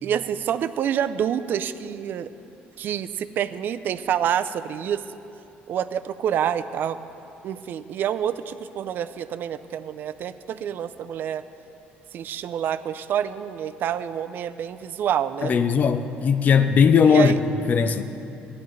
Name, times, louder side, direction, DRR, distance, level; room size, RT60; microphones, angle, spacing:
voice 1, 0.0-2.3 2.8-5.2 5.7-7.0 7.4-11.4 12.1-15.5 17.1-17.4, right 9 dB, 55° right, 13 dB, 0.4 m, -27 dB
voice 2, 15.4-17.3 17.7-18.0, left 6 dB, 45° left, 10 dB, 0.5 m, -18 dB
15.5 x 10.5 x 3.2 m, 2.8 s
cardioid pair, 115°, 4 cm